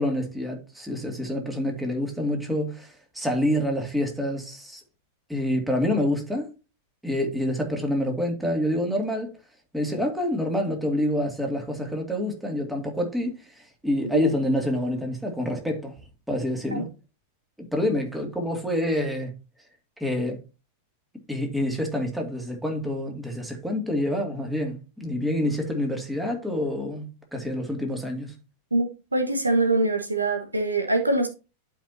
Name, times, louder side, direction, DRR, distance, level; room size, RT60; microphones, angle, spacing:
voice 1, 0.0-4.8 5.3-6.5 7.0-9.3 9.7-15.9 16.3-16.9 17.6-19.3 20.0-20.4 21.3-28.3, left 1 dB, 5° right, 2.5 m, -27 dB
voice 2, 28.7-31.3, right 2 dB, 80° right, 1.4 m, -24 dB
12.0 x 5.3 x 2.8 m
figure-of-eight pair, 90°, 0 cm